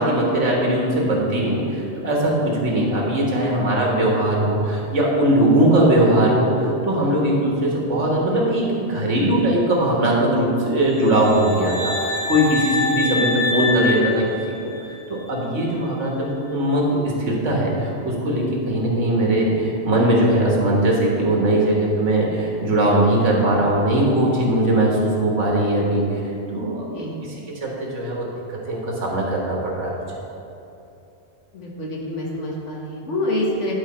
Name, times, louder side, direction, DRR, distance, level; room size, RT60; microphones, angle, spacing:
voice 1, 0.0-14.3 14.6-14.7 15.1-26.0 26.5-27.4 27.6-30.0, right 1 dB, 90° right, -3 dB, 1.8 m, -20 dB
voice 2, 7.0-7.3 26.9-27.2 31.5-33.7, left 1 dB, 85° left, -2 dB, 1.7 m, -27 dB
sound 1, 11.0-15.0, left 3 dB, 35° right, 1.0 m, -25 dB
10.5 x 4.8 x 4.2 m, 2.9 s
omnidirectional pair, 1.2 m